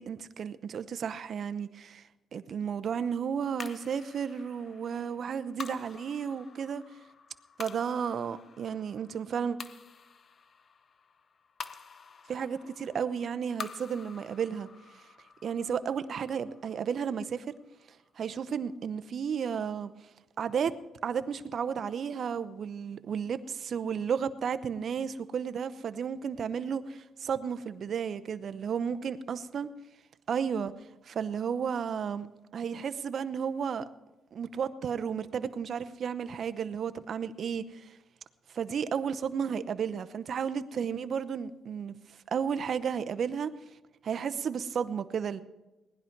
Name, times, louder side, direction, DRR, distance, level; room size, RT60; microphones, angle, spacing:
voice 1, 0.0-2.0 2.3-6.8 7.6-9.6 12.3-14.7 14.9-15.0 15.4-17.5 18.2-19.9 20.4-20.7 21.0-29.7 30.3-30.7 31.0-32.3 32.5-33.9 34.3-38.0 38.5-43.5 44.0-45.4, right 7 dB, 55° right, 0.7 m, -33 dB
sound 1, 3.6-18.1, left 5 dB, 45° left, 0.8 m, -48 dB
19.0 x 11.0 x 4.6 m
cardioid pair, 90°, 0 cm